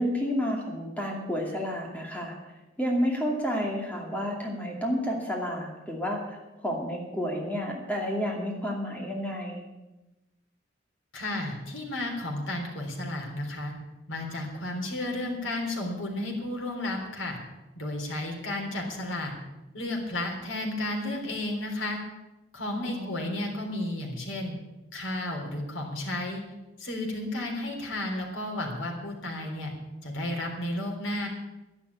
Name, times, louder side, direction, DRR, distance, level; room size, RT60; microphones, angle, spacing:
voice 1, 0.0-2.4 2.8-6.4 6.6-9.7 22.8-23.3, equal, 10° left, -1 dB, 2.5 m, -30 dB
voice 2, 11.1-13.7 14.1-17.4 17.8-19.3 19.7-22.0 22.5-24.5 24.9-26.4 26.8-29.7 30.0-31.3, left 1 dB, 85° left, 1 dB, 3.6 m, -32 dB
11.0 x 11.0 x 8.5 m, 1.0 s
head